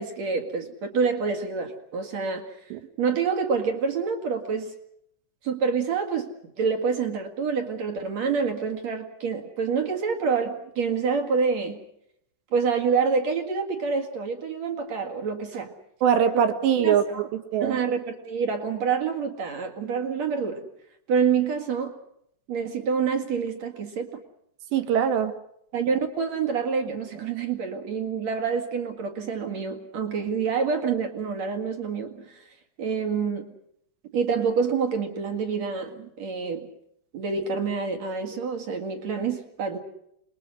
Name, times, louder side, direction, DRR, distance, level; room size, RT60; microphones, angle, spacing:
voice 1, 0.0-2.5 3.0-4.7 5.4-6.3 6.6-11.8 12.5-15.7 16.8-17.2 17.6-20.6 21.1-22.0 22.5-24.2 25.7-32.4 32.8-33.5 34.1-36.7 37.1-39.8, right 5 dB, 50° right, 4 dB, 2.2 m, -27 dB
voice 2, 16.0-17.0 17.5-17.8 24.7-25.4, right 8 dB, 65° right, 9 dB, 3.5 m, -22 dB
28.0 x 21.0 x 6.5 m, 0.75 s
omnidirectional pair, 5.7 m